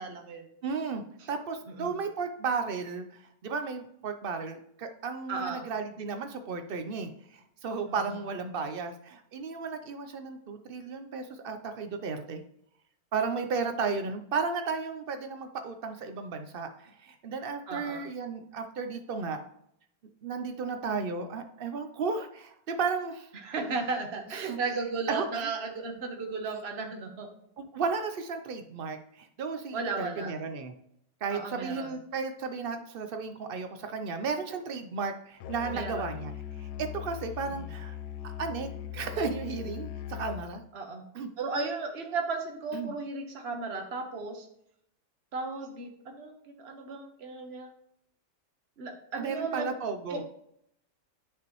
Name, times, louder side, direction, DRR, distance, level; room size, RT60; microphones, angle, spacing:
voice 1, 0.0-0.5 1.2-1.3 1.8-2.0 5.3-5.6 7.9-8.1 17.7-18.0 23.3-27.3 29.7-30.4 31.3-31.9 35.7-36.1 37.5-37.7 40.7-41.0 41.4-44.5 45.3-47.7 48.8-49.7 50.1-50.2, right 4 dB, 40° right, 3 dB, 1.3 m, -35 dB
voice 2, 0.6-12.4 13.1-19.4 20.2-23.3 24.3-24.6 25.1-25.5 27.6-30.7 31.2-36.3 36.6-38.0 38.2-40.6 41.1-41.3 42.7-42.9 49.2-50.2, right 5 dB, 75° right, 7 dB, 0.5 m, -34 dB
Musical instrument, 35.4-40.5, left 11 dB, 85° left, 1.2 m, -40 dB
9.7 x 5.8 x 3.0 m, 0.71 s
omnidirectional pair, 1.8 m